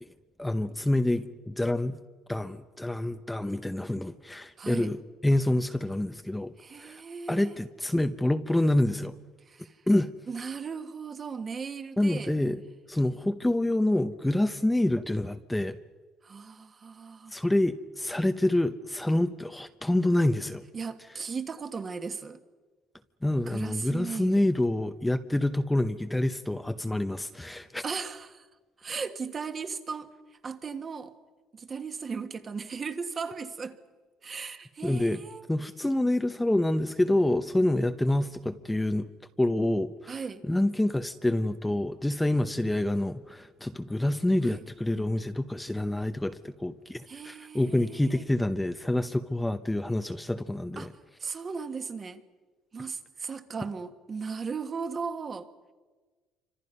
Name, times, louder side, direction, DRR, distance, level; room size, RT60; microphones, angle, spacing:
voice 1, 0.4-2.0 2.3-6.5 6.8-7.0 7.3-9.1 9.9-10.1 12.0-12.6 12.9-15.8 17.3-20.6 23.2-27.8 34.8-35.2 35.5-39.1 39.4-40.1 40.5-50.9, left 1 dB, 5° left, 0.8 m, -27 dB
voice 2, 4.6-4.9 6.6-7.6 9.5-9.8 10.3-12.4 16.2-17.3 20.7-22.4 23.5-24.5 27.8-28.5 28.8-30.1 30.4-31.1 31.5-33.8 34.2-35.5 40.1-40.4 44.4-44.6 47.1-48.3 50.7-50.9 51.2-52.2 52.7-55.5, right 5 dB, 30° right, 1.6 m, -37 dB
28.5 x 25.5 x 5.5 m
cardioid pair, 120°, 0 cm